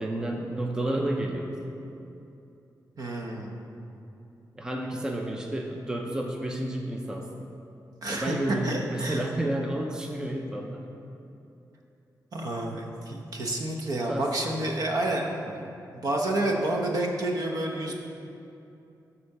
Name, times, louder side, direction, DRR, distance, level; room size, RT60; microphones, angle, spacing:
voice 1, 0.0-1.7 4.6-7.5 8.1-10.8 14.1-14.3 15.6-15.7, right 1 dB, 10° right, 1 dB, 0.6 m, -31 dB
voice 2, 3.0-3.5 8.0-9.3 12.3-15.3 15.9-17.9, right 1 dB, 60° right, 1 dB, 1.1 m, -29 dB
11.5 x 4.3 x 6.7 m, 2.8 s
wide cardioid pair, 170°, 7 cm